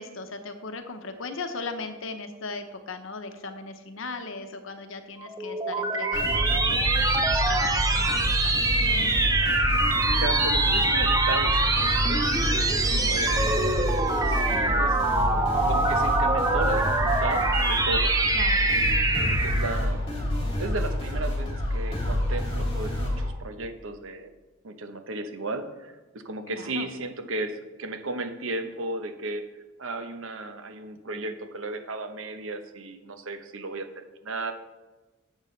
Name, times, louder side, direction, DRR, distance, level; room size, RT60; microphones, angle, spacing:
voice 1, 0.0-9.6 12.9-13.2 18.3-18.6 26.5-26.9, left 3 dB, 65° left, 7 dB, 0.9 m, -38 dB
sound 1, 5.2-19.9, right 2 dB, 15° right, 0.6 m, -24 dB
sound 2, 6.1-23.3, left 1 dB, 25° left, 2.7 m, -28 dB
voice 2, 10.0-12.3 13.0-13.7 14.2-15.0 15.7-18.2 18.6-20.0 20.6-24.3 24.6-29.4 29.8-34.5, right 2 dB, 70° right, 7 dB, 0.9 m, -35 dB
10.5 x 7.3 x 3.2 m, 1.1 s
head